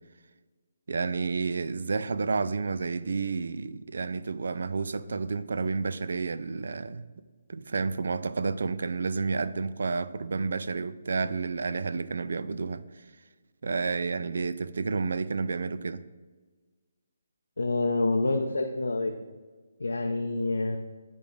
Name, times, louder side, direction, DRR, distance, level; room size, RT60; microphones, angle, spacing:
voice 1, 0.9-7.1 7.5-12.8 13.6-16.0, right 4 dB, 70° right, 0.3 m, -30 dB
voice 2, 17.6-19.2 19.8-20.8, left 2 dB, 90° left, 0.5 m, -27 dB
10.0 x 3.8 x 3.7 m
hypercardioid pair, 160°, 0 cm